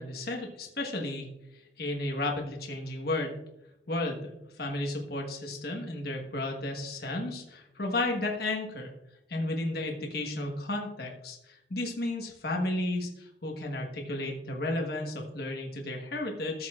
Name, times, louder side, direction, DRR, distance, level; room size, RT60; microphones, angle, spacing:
voice 1, 0.0-1.3 1.8-3.4 3.9-4.3 4.6-8.9 9.3-16.7, left 2 dB, 55° left, 1 dB, 1.3 m, -33 dB
14.0 x 7.2 x 2.4 m, 0.88 s
head